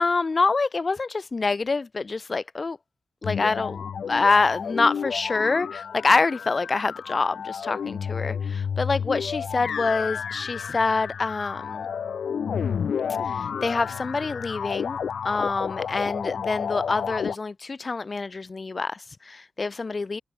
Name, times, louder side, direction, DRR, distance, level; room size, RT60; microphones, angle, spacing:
voice 1, 0.0-2.8 3.2-11.9 13.3-15.0 15.2-20.2, left 3 dB, 40° left, 1.7 m, -26 dB
sound 1, 3.2-17.4, left 7 dB, 70° left, 0.6 m, -31 dB
supercardioid pair, 50°, 0 cm